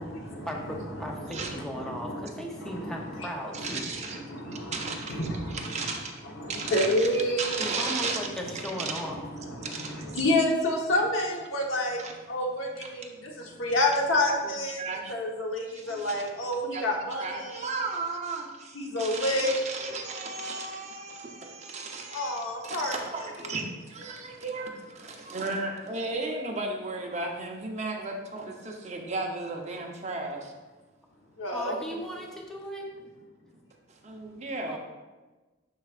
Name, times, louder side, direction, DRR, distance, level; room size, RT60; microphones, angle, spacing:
voice 1, 0.0-3.9 7.6-9.2 31.5-32.9 34.7-34.8, equal, 5° left, -1 dB, 0.7 m, -37 dB
voice 2, 0.9-3.3 3.5-3.8 4.1-5.9 6.4-7.6 9.1-12.0 12.3-13.1 13.6-14.8 15.1-17.7 18.7-19.5 22.1-22.9 31.4-31.7, left 1 dB, 80° left, 0 dB, 1.1 m, -29 dB
voice 3, 3.5-4.2 4.4-5.2 5.5-6.2 6.5-7.1 7.4-8.2 8.6-9.0 9.6-10.3 12.0-12.1 12.8-12.9 14.3-15.1 15.7-16.2 16.7-16.9 17.2-30.5 33.9-34.8, right 3 dB, 35° right, 1 dB, 0.8 m, -35 dB
11.0 x 4.6 x 2.5 m, 1.2 s
head